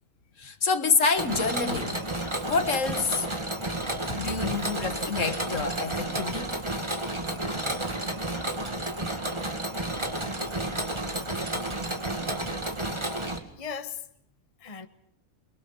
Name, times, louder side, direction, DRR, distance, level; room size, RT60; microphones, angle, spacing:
voice 1, 0.4-2.0 2.4-3.3 4.2-6.5, left 4 dB, 60° left, 1.8 m, -27 dB
Mechanisms, 1.2-13.4, right 1 dB, 20° right, 2.1 m, -31 dB
voice 2, 3.9-4.6 12.9-13.3 13.6-14.0 14.6-14.9, left 5 dB, 25° left, 1.1 m, -39 dB
28.5 x 22.0 x 5.5 m
omnidirectional pair, 1.5 m